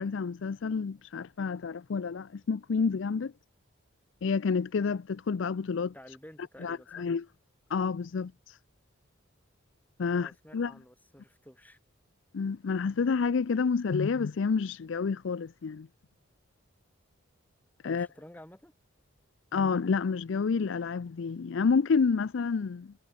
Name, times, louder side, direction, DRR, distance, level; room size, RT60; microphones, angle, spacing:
voice 1, 0.0-3.3 4.2-5.9 6.6-7.2 7.7-8.6 10.0-10.7 12.3-15.9 17.8-18.1 19.5-22.9, left 5 dB, 60° left, 0.4 m, -29 dB
voice 2, 5.9-7.1 10.1-11.8 17.8-18.7, equal, 10° left, 5.9 m, -51 dB
head